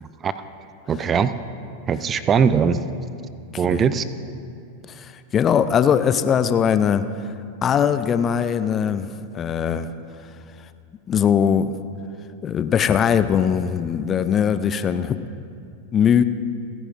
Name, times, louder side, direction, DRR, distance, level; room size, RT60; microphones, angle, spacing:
voice 1, 0.0-0.3 0.9-1.3 1.9-2.8 3.6-4.0, right 6 dB, 25° right, 13 dB, 0.5 m, -20 dB
voice 2, 4.9-7.1 7.6-9.1 9.3-9.9 11.1-11.7 12.4-15.2 15.9-16.2, left 8 dB, 25° left, 12 dB, 0.5 m, -20 dB
30.0 x 11.0 x 2.6 m, 2.5 s
figure-of-eight pair, 90°, 0 cm